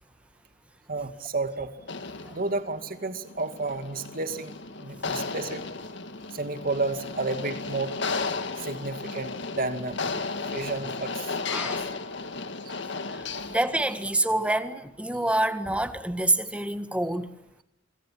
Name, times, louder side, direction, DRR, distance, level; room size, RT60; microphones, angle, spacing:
voice 1, 0.9-1.7 2.3-4.5 4.8-5.6 6.3-7.9 8.6-11.3 11.6-11.7 12.7-12.8 13.3-13.4, right 3 dB, 45° right, 2.2 m, -31 dB
sound 1, 1.8-14.2, left 4 dB, 65° left, 2.0 m, -34 dB
voice 2, 11.5-11.9 13.1-17.4, right 1 dB, 5° right, 1.6 m, -27 dB
27.0 x 23.5 x 7.6 m
head